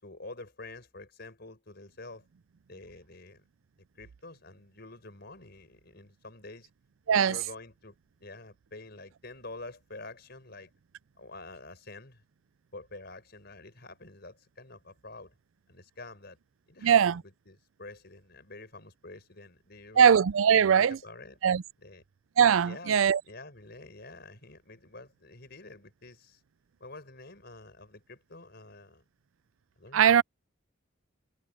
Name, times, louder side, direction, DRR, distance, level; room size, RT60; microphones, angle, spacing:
voice 1, 0.0-2.2 2.7-3.4 4.0-6.7 7.1-8.0 8.2-10.7 11.2-12.2 12.7-15.3 15.7-16.4 16.7-20.1 20.5-21.4 21.8-22.0 22.6-26.4 26.8-29.0 29.8-30.2, left 2 dB, 50° left, 5.5 m, -48 dB
voice 2, 16.8-17.2 20.0-21.0 21.4-21.6 22.4-23.2 29.9-30.2, right 8 dB, 80° right, 0.4 m, -21 dB
head